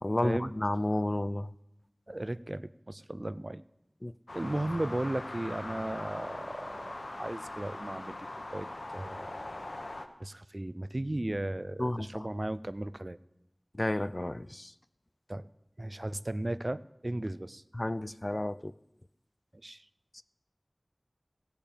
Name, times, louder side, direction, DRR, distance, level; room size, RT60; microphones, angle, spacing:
voice 1, 0.0-1.5 4.0-4.1 11.8-12.3 13.7-14.7 17.7-18.7 20.1-20.2, left 1 dB, 40° left, 15 dB, 0.4 m, -31 dB
voice 2, 2.1-3.6 4.3-6.9 7.2-9.6 10.2-13.2 15.3-15.5 15.8-17.6 19.6-19.8, right 1 dB, 45° right, 16 dB, 0.4 m, -36 dB
sound 1, 4.3-10.1, left 2 dB, 75° left, 0.9 m, -41 dB
17.0 x 6.8 x 5.2 m, 0.85 s
wide cardioid pair, 45°, 0 cm